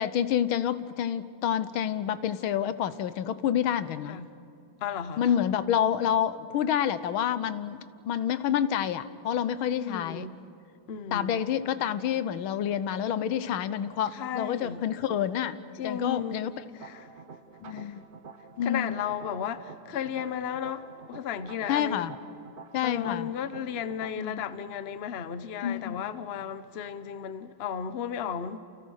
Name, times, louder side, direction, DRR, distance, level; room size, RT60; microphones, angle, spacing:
voice 1, 0.0-4.2 5.2-10.3 11.1-15.6 15.8-16.5 17.6-18.0 18.6-19.0 21.7-22.1 22.7-23.3 24.2-24.4 25.6-26.1, left 9 dB, 85° left, 1.7 m, -28 dB
voice 2, 4.8-5.3 9.8-10.4 10.9-11.5 14.1-14.8 15.7-16.4 16.7-17.2 17.7-18.0 18.6-22.1 22.8-28.6, left 8 dB, 45° left, 0.9 m, -34 dB
sound 1, 16.8-24.1, right 5 dB, 55° right, 0.5 m, -48 dB
29.5 x 28.5 x 6.4 m
omnidirectional pair, 2.2 m